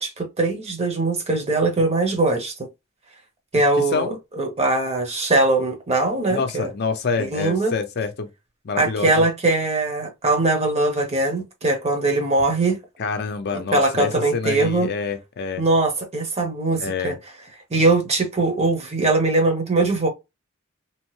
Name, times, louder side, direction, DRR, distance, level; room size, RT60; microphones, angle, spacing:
voice 1, 0.0-2.5 3.5-6.7 7.2-7.7 8.8-12.8 13.5-14.9 15.6-17.2 17.7-20.1, right 2 dB, 30° right, 0.9 m, -21 dB
voice 2, 6.3-8.3 8.6-9.2 13.0-15.6 16.8-17.2, left 5 dB, 50° left, 0.5 m, -26 dB
2.9 x 2.1 x 3.1 m
head